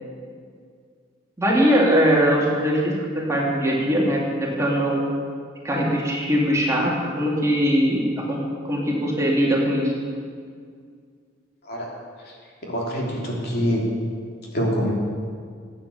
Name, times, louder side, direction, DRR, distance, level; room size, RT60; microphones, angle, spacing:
voice 1, 1.4-5.0 5.6-8.4 8.6-9.9, equal, 15° right, -3 dB, 2.5 m, -21 dB
voice 2, 12.6-13.8 14.5-14.9, equal, 55° left, -3 dB, 3.2 m, -25 dB
15.5 x 8.8 x 7.0 m, 2.1 s
head